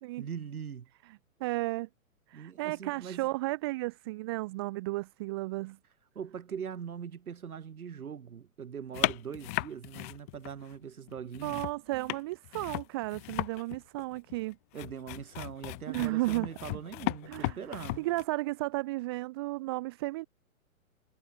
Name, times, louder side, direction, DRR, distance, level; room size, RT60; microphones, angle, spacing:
voice 1, 0.2-0.9 2.3-3.3 6.1-11.6 14.7-18.1, right 7 dB, 85° right, 2.9 m, -41 dB
voice 2, 1.4-1.9 2.3-5.8 11.4-14.6 15.9-16.5 17.3-20.3, right 20 dB, 15° right, 1.2 m, -34 dB
sound 1, 8.9-10.8 11.1-18.2, left 25 dB, 10° left, 0.9 m, -36 dB
hypercardioid pair, 175°, 43 cm